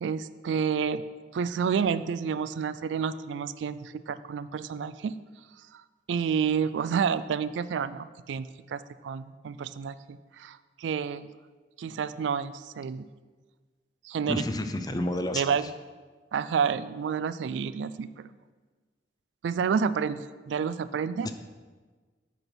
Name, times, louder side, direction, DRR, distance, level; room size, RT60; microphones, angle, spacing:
voice 1, 0.0-1.0 1.3-5.1 5.7-5.8 6.1-11.3 11.8-13.1 14.0-14.4 15.3-15.6 16.3-18.3 19.4-21.3, right 6 dB, 85° right, 15 dB, 0.3 m, -29 dB
voice 2, 14.3-15.7 21.2-21.3, left 1 dB, 20° left, 8 dB, 0.5 m, -30 dB
7.9 x 4.4 x 6.1 m, 1.4 s
head